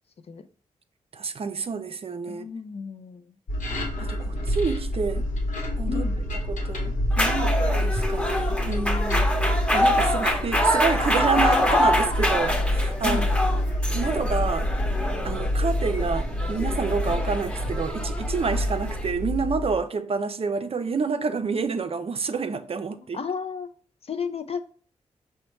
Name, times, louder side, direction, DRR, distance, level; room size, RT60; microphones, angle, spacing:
voice 1, 1.1-2.4 4.0-5.3 5.8-6.1 6.5-9.3 9.7-13.2 13.9-14.7 15.2-23.2, right 5 dB, 45° right, 0.5 m, -28 dB
voice 2, 2.3-3.3 5.9-6.2 11.4-11.9 13.0-13.3 23.1-23.7 24.0-24.6, left 5 dB, 45° left, 0.5 m, -33 dB
sound 1, 3.5-19.8, left 1 dB, 75° left, 0.9 m, -27 dB
sound 2, 7.1-19.1, left 1 dB, 10° left, 0.9 m, -26 dB
5.0 x 2.2 x 4.4 m
supercardioid pair, 40°, 13 cm